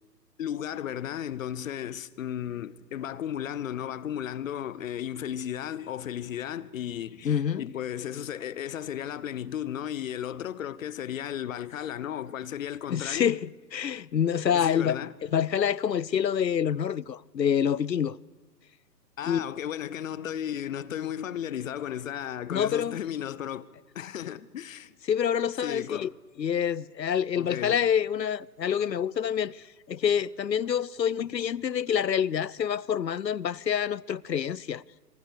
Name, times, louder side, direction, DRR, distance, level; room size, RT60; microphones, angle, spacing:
voice 1, 0.4-13.3 14.5-15.1 19.2-23.7 23.9-24.9 25.6-26.1 27.3-27.8, left 10 dB, 50° left, 1.1 m, -34 dB
voice 2, 7.2-7.7 12.9-15.0 15.2-18.2 19.3-19.4 22.5-23.0 25.1-26.1 26.4-34.8, left 8 dB, 85° left, 0.7 m, -27 dB
27.0 x 24.5 x 6.8 m
figure-of-eight pair, 125°, 50 cm